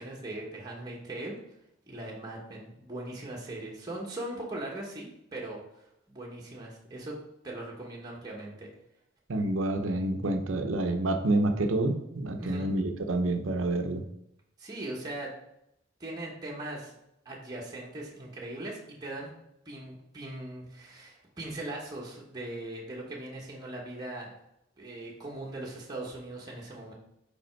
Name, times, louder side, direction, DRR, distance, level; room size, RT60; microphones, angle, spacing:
voice 1, 0.0-1.4 1.9-7.2 7.4-8.7 12.4-12.7 14.6-15.3 16.0-17.0 17.2-19.3 19.6-24.3 24.8-26.9, right 1 dB, 20° right, -4 dB, 1.1 m, -40 dB
voice 2, 9.3-14.0, right 2 dB, 85° right, 6 dB, 0.7 m, -28 dB
5.1 x 4.9 x 4.5 m, 0.80 s
head